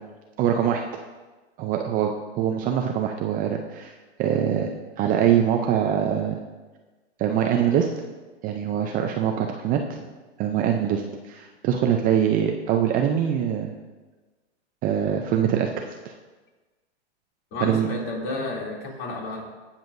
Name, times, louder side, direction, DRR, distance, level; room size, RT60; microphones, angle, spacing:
voice 1, 0.4-0.8 1.6-3.9 4.2-4.7 5.0-6.4 7.2-7.9 8.4-10.0 10.4-13.7 14.8-16.1 17.6-17.9, right 9 dB, 25° right, 3 dB, 0.5 m, -23 dB
voice 2, 17.5-19.4, left 2 dB, 35° left, -2 dB, 2.8 m, -31 dB
17.5 x 7.2 x 2.6 m, 1.2 s
hypercardioid pair, 135°, 34 cm